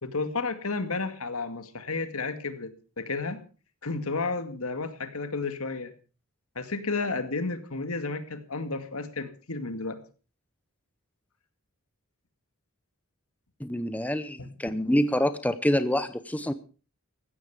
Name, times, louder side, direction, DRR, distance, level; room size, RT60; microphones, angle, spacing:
voice 1, 0.0-3.4 3.8-5.9 6.6-10.0 14.4-14.5, left 3 dB, 75° left, 9 dB, 2.2 m, -32 dB
voice 2, 13.6-16.5, left 1 dB, 5° left, 11 dB, 0.8 m, -26 dB
16.0 x 13.0 x 5.0 m, 0.37 s
head